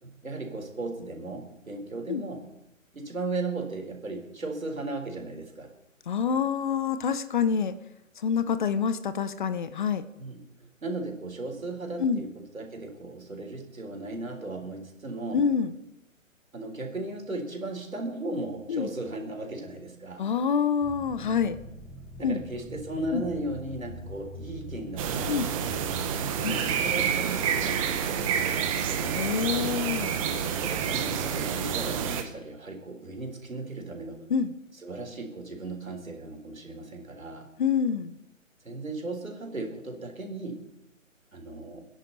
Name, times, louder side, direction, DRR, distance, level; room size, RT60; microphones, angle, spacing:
voice 1, 0.0-2.5 2.9-5.7 10.2-10.4 10.8-15.4 16.5-20.2 22.2-25.7 26.4-29.2 30.6-34.2 34.8-37.5 38.6-40.6 41.3-41.9, right 2 dB, 85° right, 2 dB, 4.1 m, -36 dB
voice 2, 6.1-7.8 8.2-10.0 12.0-12.2 15.3-15.8 18.7-18.9 20.2-21.6 22.2-22.4 23.1-23.2 25.3-25.5 26.4-26.6 29.1-30.2 34.3-34.5 37.6-38.2, left 6 dB, 35° left, 13 dB, 0.8 m, -26 dB
sound 1, 20.8-26.9, equal, ahead, 0.8 m, -44 dB
sound 2, 25.0-32.2, right 7 dB, 25° right, 1.3 m, -28 dB
28.0 x 10.5 x 4.1 m, 0.87 s
figure-of-eight pair, 140°, 40 cm